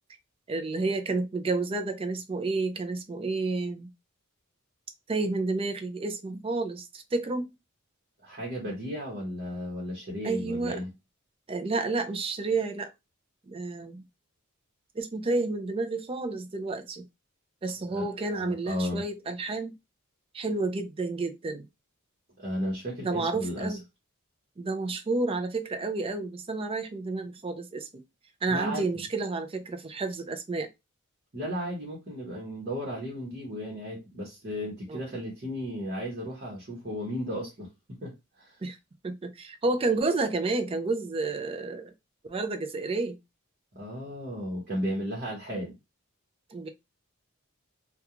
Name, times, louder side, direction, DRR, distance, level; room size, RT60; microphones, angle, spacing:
voice 1, 0.5-3.9 5.1-7.5 10.2-10.8 11.5-12.9 13.5-14.0 15.0-17.0 17.6-19.7 20.3-21.7 23.0-23.8 24.6-27.9 28.4-30.7 34.9-35.0 38.6-38.8 39.0-41.9 42.2-43.2 46.5-46.7, right 3 dB, 25° right, 0.3 m, -30 dB
voice 2, 8.2-10.9 17.9-19.0 22.4-23.8 28.5-28.9 31.3-37.7 38.0-38.6 43.7-45.7, equal, 40° right, 1.0 m, -34 dB
2.4 x 2.3 x 2.9 m
head